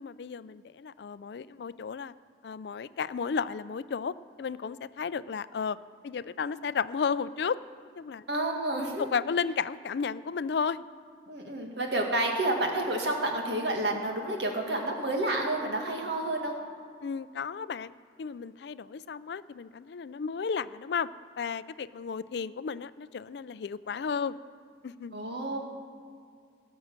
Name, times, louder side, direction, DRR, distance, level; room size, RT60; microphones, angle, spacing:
voice 1, 0.0-2.1 2.4-5.8 6.0-7.6 8.0-8.2 9.0-10.8 17.0-17.9 18.2-21.1 21.4-24.4 24.8-25.1, left 6 dB, 65° left, 16 dB, 0.4 m, -33 dB
voice 2, 8.3-9.1 11.3-16.6 25.1-25.6, right 1 dB, 70° right, 1 dB, 2.1 m, -30 dB
17.5 x 6.4 x 7.4 m, 2.2 s
head